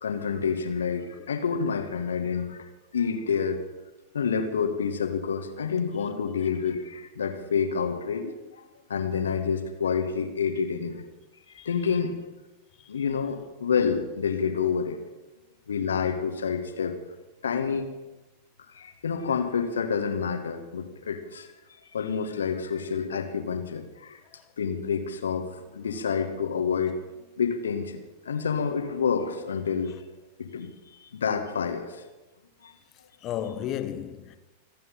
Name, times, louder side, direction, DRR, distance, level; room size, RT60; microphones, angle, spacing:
voice 1, 0.0-2.7 2.9-3.6 4.1-8.4 8.9-11.0 11.7-12.2 12.9-15.0 15.7-17.0 17.4-18.0 18.7-21.5 21.9-24.2 24.6-27.0 27.4-29.9 30.4-32.0 32.6-32.7, left 6 dB, 70° left, 1.8 m, -28 dB
voice 2, 33.2-34.4, left 10 dB, 35° left, 1.3 m, -33 dB
26.0 x 9.2 x 5.7 m
figure-of-eight pair, 90°, 0 cm